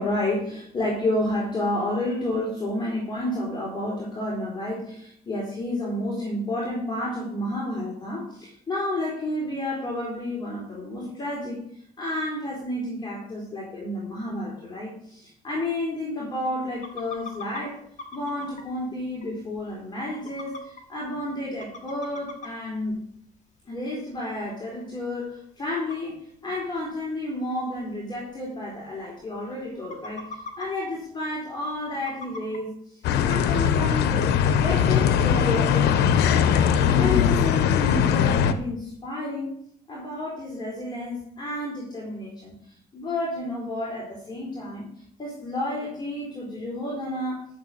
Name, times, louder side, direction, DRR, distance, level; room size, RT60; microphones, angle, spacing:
voice 1, 0.0-11.6 12.0-17.8 18.1-23.1 23.7-26.2 26.4-32.7 33.1-34.3 34.6-36.5 36.9-39.5 39.9-42.5 42.9-44.9 45.2-47.5, left 1 dB, 25° left, -4 dB, 4.0 m, -30 dB
sound 1, 16.7-17.6 18.0-18.7 19.2-19.3 19.6-19.7 20.1-20.8 21.3-21.4 21.6-22.5 22.9-23.0 24.2-24.3 24.6-24.7 25.8-26.0 26.8-26.9 27.5-27.6 27.8-27.9 28.2-28.3 28.7-28.8 29.0-29.4 29.7-30.9 32.1-32.6, left 3 dB, 45° left, 2.2 m, -39 dB
sound 2, 33.0-38.5, left 8 dB, 80° left, 1.0 m, -20 dB
12.5 x 7.0 x 5.7 m, 0.66 s
cardioid pair, 110°, 17 cm